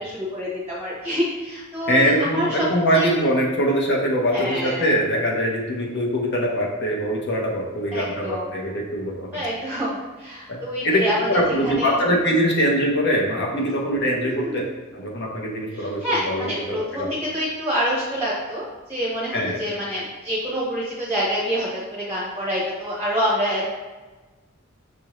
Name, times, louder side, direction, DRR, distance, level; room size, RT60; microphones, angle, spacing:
voice 1, 0.0-2.6 2.9-3.2 4.3-4.9 7.9-8.5 9.3-11.3 11.6-12.0 13.6-13.7 14.2-14.6 15.7-23.7, equal, 10° right, -8 dB, 0.8 m, -27 dB
voice 2, 1.9-9.4 10.5-10.6 10.8-14.6 14.9-17.1 19.3-19.6, equal, 55° left, -1 dB, 0.9 m, -22 dB
6.2 x 2.6 x 3.0 m, 1.2 s
head